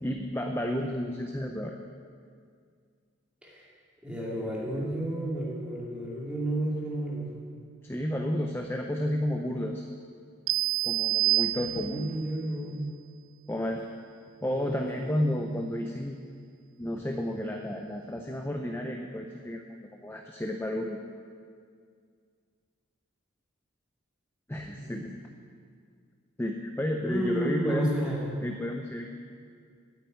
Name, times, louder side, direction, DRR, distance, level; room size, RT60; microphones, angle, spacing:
voice 1, 0.0-1.8 7.8-9.8 10.8-12.3 13.5-13.8 14.4-16.2 16.8-21.0 24.5-25.1 26.4-28.0 28.4-29.1, left 1 dB, 10° left, 2 dB, 0.5 m, -31 dB
voice 2, 4.0-7.4 11.7-12.9 14.4-15.3 24.6-25.2 27.0-28.3, right 1 dB, 5° right, -6 dB, 2.4 m, -32 dB
sound 1, 10.5-12.2, right 17 dB, 75° right, 0.5 m, -27 dB
8.9 x 8.7 x 9.2 m, 2.1 s
head